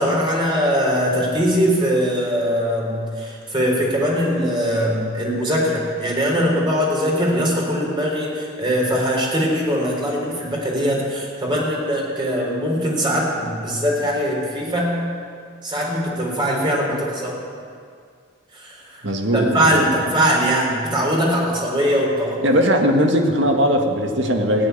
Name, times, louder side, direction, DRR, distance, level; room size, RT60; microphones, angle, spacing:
voice 1, 0.0-15.0 15.6-17.4 18.5-19.1 19.3-22.4, equal, 25° right, -2 dB, 3.8 m, -21 dB
voice 2, 19.0-19.9 22.4-24.7, equal, 75° right, 3 dB, 1.7 m, -19 dB
15.5 x 9.3 x 9.4 m, 2.2 s
head